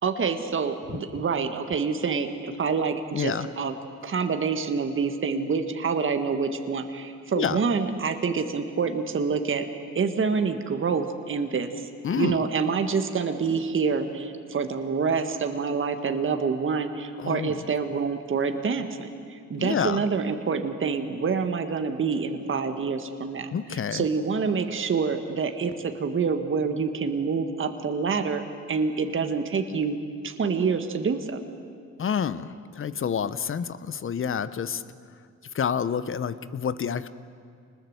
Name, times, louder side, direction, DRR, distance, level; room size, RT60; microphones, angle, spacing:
voice 1, 0.0-3.7 4.0-9.7 10.0-11.7 12.2-30.0 30.2-31.4, right 5 dB, 40° right, 7 dB, 1.8 m, -27 dB
voice 2, 3.1-3.5 7.3-7.6 12.0-12.5 17.2-17.7 19.6-20.0 23.5-24.1 32.0-34.8 35.5-37.1, left 7 dB, 45° left, 14 dB, 1.0 m, -28 dB
26.0 x 20.5 x 8.0 m, 2.5 s
cardioid pair, 90°, 30 cm